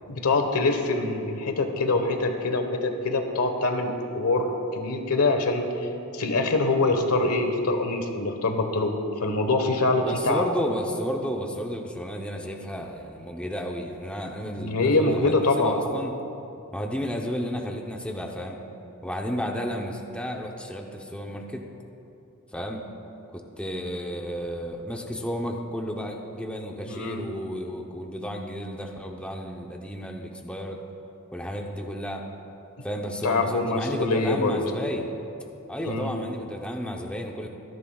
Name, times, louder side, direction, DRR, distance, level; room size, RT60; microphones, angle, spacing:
voice 1, 0.1-5.9 6.1-10.4 14.6-15.8 26.9-27.3 33.2-34.6 35.8-36.1, left 2 dB, 90° left, 5 dB, 1.2 m, -24 dB
voice 2, 10.1-16.1 16.7-18.6 19.0-21.7 22.5-22.8 23.3-30.8 31.3-32.2 32.8-35.1 35.7-37.5, equal, 5° left, 1 dB, 0.8 m, -32 dB
25.5 x 11.0 x 2.4 m, 2.8 s
head